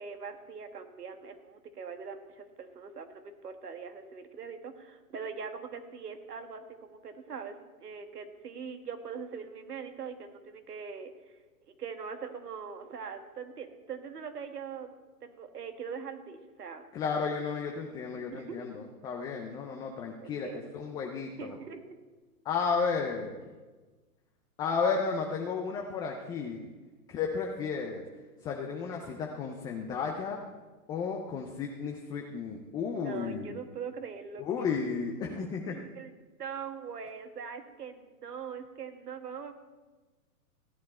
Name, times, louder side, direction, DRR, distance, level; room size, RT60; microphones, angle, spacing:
voice 1, 0.0-11.1 11.7-14.9 15.2-16.8 18.3-18.7 20.2-20.7 21.4-21.8 33.0-34.7 35.3-35.4 35.7-36.1 36.4-39.5, right 6 dB, 80° right, 6 dB, 1.8 m, -42 dB
voice 2, 16.9-20.5 20.7-21.6 22.5-23.4 24.6-26.6 27.1-28.0 28.4-30.4 30.9-33.6 34.4-35.7, left 5 dB, 10° left, 1 dB, 0.4 m, -33 dB
16.0 x 9.4 x 4.2 m, 1.3 s
hypercardioid pair, 120°, 46 cm